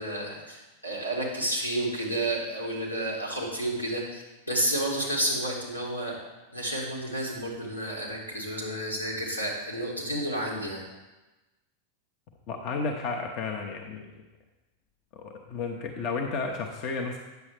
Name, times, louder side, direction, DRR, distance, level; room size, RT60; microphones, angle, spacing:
voice 1, 0.0-6.2 6.5-10.8, right 1 dB, 90° left, -3 dB, 1.9 m, -31 dB
voice 2, 12.5-14.1 15.1-17.2, left 4 dB, 40° left, 2 dB, 0.8 m, -32 dB
9.2 x 7.3 x 3.4 m, 1.1 s
figure-of-eight pair, 90°, 0 cm